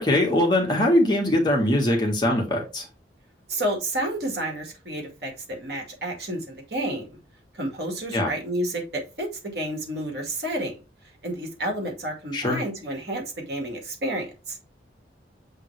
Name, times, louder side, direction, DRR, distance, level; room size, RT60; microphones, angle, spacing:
voice 1, 0.0-2.9 8.1-8.3 12.3-12.6, left 1 dB, 25° left, 0 dB, 1.7 m, -22 dB
voice 2, 3.5-7.2 7.6-10.7 11.2-14.6, right 1 dB, 60° right, 1 dB, 2.2 m, -30 dB
7.6 x 3.7 x 3.3 m, 0.30 s
head